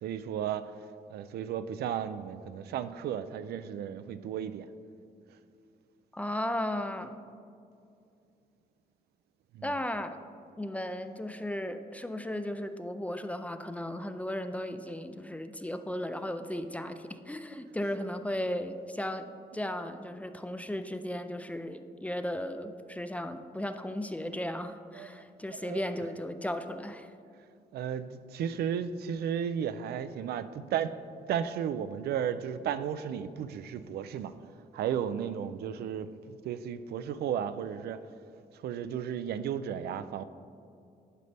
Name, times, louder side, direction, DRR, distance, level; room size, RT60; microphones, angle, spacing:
voice 1, 0.0-0.7 1.1-4.7 9.5-9.9 19.5-19.7 23.7-23.8 24.9-26.0 27.7-30.9 31.3-34.3 34.7-38.0 38.5-40.2, right 8 dB, 80° right, 0.4 m, -34 dB
voice 2, 6.1-7.2 9.6-10.2 10.6-27.1, left 1 dB, 10° left, 0.3 m, -35 dB
11.0 x 5.2 x 3.4 m
cardioid pair, 105°, 16 cm